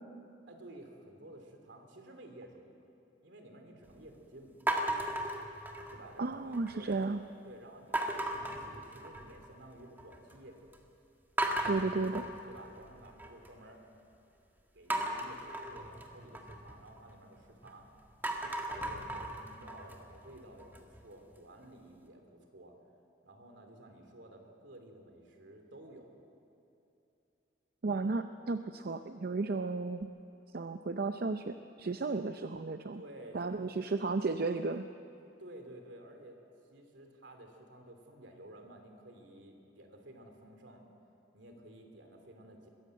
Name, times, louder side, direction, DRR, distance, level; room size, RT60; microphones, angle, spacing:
voice 1, 0.5-2.9 3.2-4.6 5.9-7.0 7.4-10.7 12.5-13.8 14.7-17.9 18.4-22.8 23.2-26.2 32.9-33.7 35.4-36.4 36.7-40.8 41.3-42.7, right 1 dB, 75° right, 4 dB, 3.0 m, -53 dB
sound 1, 4.7-6.1 6.5-7.1 7.9-9.5 9.8-10.4 10.7-10.8 11.4-13.5 14.9-17.7 18.1-21.0, right 1 dB, 10° right, 1.6 m, -36 dB
voice 2, 6.2-7.2 11.7-12.3 27.8-30.1 30.5-33.0 33.3-34.9, right 3 dB, 55° right, 9 dB, 0.6 m, -34 dB
22.0 x 16.5 x 7.8 m, 2.9 s
head